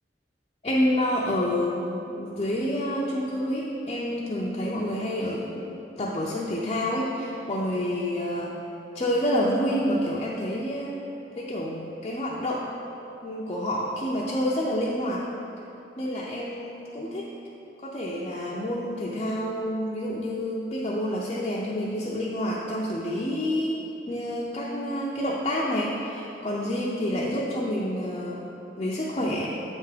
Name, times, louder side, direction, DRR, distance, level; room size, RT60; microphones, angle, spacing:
voice 1, 0.6-8.5 8.9-11.0 11.4-12.7 13.2-15.2 16.0-17.3 17.8-28.4 28.8-29.5, equal, 35° left, -5 dB, 0.5 m, -28 dB
8.2 x 3.5 x 4.9 m, 2.9 s
head